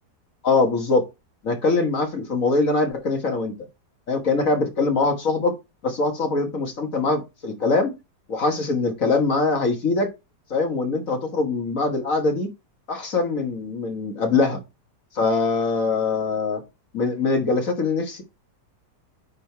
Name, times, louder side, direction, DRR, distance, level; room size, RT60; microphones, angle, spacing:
voice 1, 0.4-1.1 1.4-3.5 4.1-5.5 5.8-7.9 8.3-10.1 10.5-12.5 12.9-14.6 15.2-16.6 16.9-18.2, left 3 dB, 50° left, 1.7 m, -22 dB
9.5 x 3.8 x 4.5 m
omnidirectional pair, 1.9 m